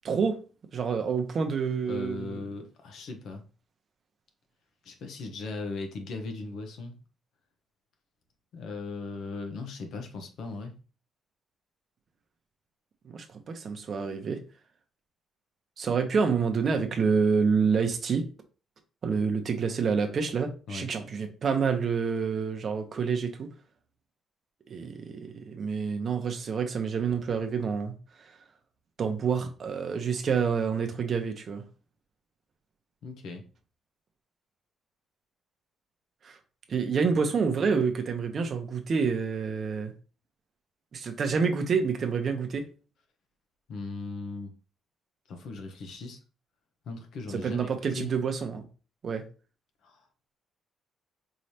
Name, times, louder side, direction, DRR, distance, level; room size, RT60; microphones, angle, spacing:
voice 1, 0.0-0.4 0.7-2.4 13.1-14.4 15.8-18.2 19.0-23.5 24.7-27.9 29.0-31.6 36.2-36.4 36.7-39.9 40.9-42.6 47.4-48.6 49.0-49.2, right 5 dB, 40° right, 0.7 m, -28 dB
voice 2, 1.8-3.4 4.8-6.9 8.5-10.7 20.7-20.9 33.0-33.4 43.7-44.5 45.3-46.2 46.9-48.1 49.8-50.0, left 3 dB, 65° left, 0.9 m, -38 dB
4.7 x 3.2 x 2.8 m
cardioid pair, 140°, 0 cm